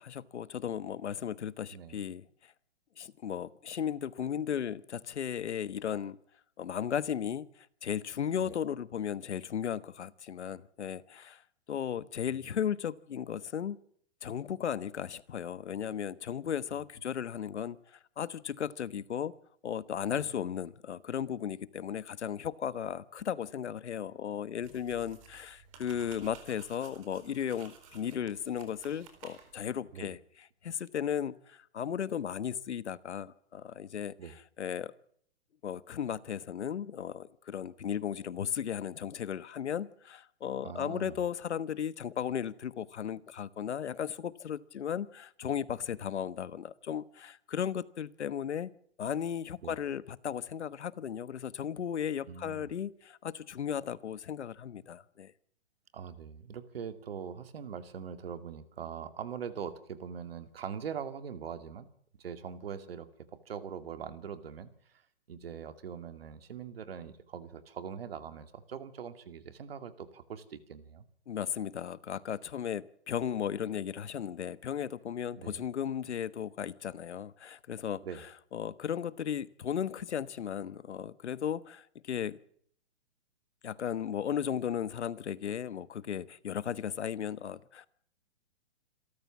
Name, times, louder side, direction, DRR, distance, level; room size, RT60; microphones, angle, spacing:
voice 1, 0.0-2.2 3.0-6.2 6.6-11.4 11.7-13.8 14.2-19.3 19.6-34.9 35.6-48.7 49.0-55.3 71.3-82.4 83.6-87.9, left 8 dB, 75° left, 17 dB, 1.3 m, -36 dB
voice 2, 1.7-2.0 8.4-8.5 12.3-12.4 20.1-20.3 26.0-26.1 29.9-30.1 34.2-34.3 40.6-41.2 49.6-49.7 52.3-52.7 55.9-61.9 62.2-63.1 63.5-64.7 65.3-71.0 75.4-75.6 78.0-78.2, right 7 dB, 60° right, 10 dB, 2.4 m, -42 dB
sound 1, 24.6-29.7, right 6 dB, 30° right, 3.9 m, -54 dB
27.5 x 13.5 x 7.3 m, 0.64 s
hypercardioid pair, 170°, 34 cm